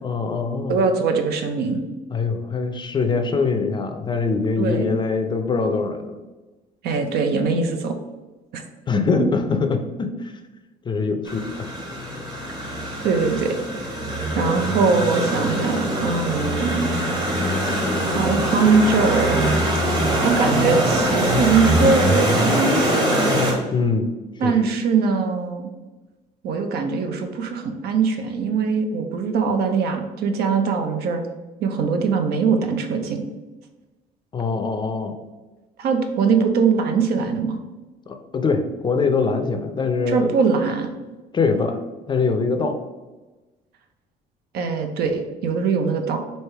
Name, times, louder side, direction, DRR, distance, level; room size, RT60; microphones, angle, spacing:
voice 1, 0.0-0.8 2.1-6.1 8.9-10.3 10.9-11.7 23.7-24.1 24.4-24.7 34.3-35.1 38.1-40.3 41.3-41.8 42.1-42.8, left 4 dB, 25° left, 6 dB, 0.4 m, -23 dB
voice 2, 0.7-1.8 4.6-4.9 6.8-7.9 8.5-8.6 9.2-9.3 12.5-12.6 13.0-13.5 14.3-17.0 18.1-19.5 20.2-23.3 24.4-25.7 26.4-31.2 31.6-33.2 35.8-37.6 40.1-40.9 44.5-46.2, right 5 dB, 70° right, 6 dB, 0.6 m, -21 dB
sound 1, 11.3-23.5, equal, 25° right, 1.2 m, -22 dB
3.3 x 2.7 x 4.4 m, 1.2 s
cardioid pair, 110°, 17 cm